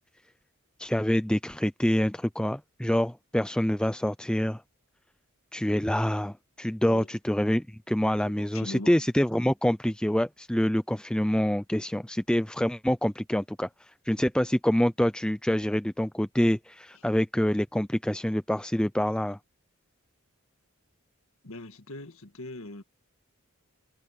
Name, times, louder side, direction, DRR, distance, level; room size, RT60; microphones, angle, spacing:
voice 1, 0.8-4.6 5.5-19.4, equal, 5° left, 0.4 m, -26 dB
voice 2, 8.2-9.1 16.9-17.1 21.4-22.8, left 2 dB, 70° left, 1.9 m, -41 dB
head